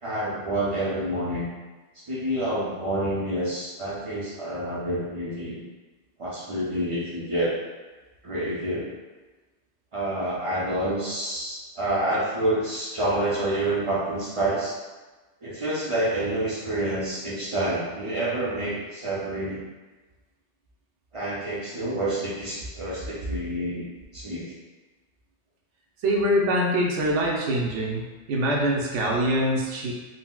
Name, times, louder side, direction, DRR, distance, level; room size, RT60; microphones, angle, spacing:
voice 1, 0.0-1.5 2.1-5.6 6.2-7.6 8.2-8.9 9.9-14.8 15.4-19.6 21.1-23.9 24.1-24.5, right 1 dB, 40° right, -7 dB, 0.4 m, -28 dB
voice 2, 26.0-28.0 28.3-29.9, equal, 80° right, -2 dB, 0.9 m, -24 dB
3.9 x 2.0 x 2.2 m, 1.3 s
omnidirectional pair, 1.2 m